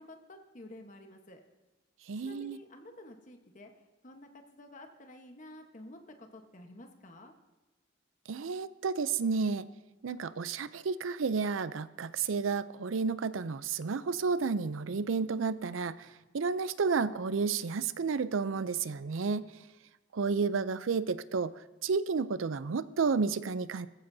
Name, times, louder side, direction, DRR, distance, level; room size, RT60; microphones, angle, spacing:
voice 1, 0.0-1.4 2.2-3.7 4.0-7.3, left 1 dB, 40° left, 4 dB, 1.2 m, -51 dB
voice 2, 2.1-2.6 8.3-9.7 10.0-19.5 20.1-23.9, right 5 dB, 80° right, 15 dB, 0.5 m, -31 dB
18.0 x 14.5 x 2.7 m, 1.1 s
head